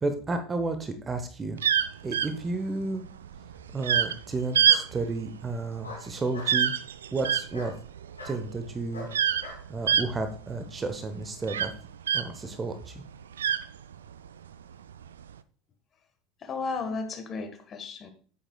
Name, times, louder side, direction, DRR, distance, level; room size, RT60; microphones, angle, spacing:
voice 1, 0.0-1.6 2.0-3.0 3.7-6.7 7.1-7.7 8.2-9.1 9.7-11.7 12.1-13.0, right 3 dB, 20° right, 7 dB, 0.9 m, -32 dB
sound 1, 1.6-12.6 12.9-14.3 15.0-15.3, right 9 dB, 70° right, 0.3 m, -26 dB
Bark, 2.5-3.1 4.6-4.9 5.8-6.6 7.5-7.7 8.2-8.4 8.9-9.6, left 3 dB, 80° left, 2.6 m, -42 dB
voice 2, 16.4-18.1, left 4 dB, 30° left, 6 dB, 1.4 m, -34 dB
9.8 x 8.1 x 2.3 m, 0.42 s
figure-of-eight pair, 75°, 0 cm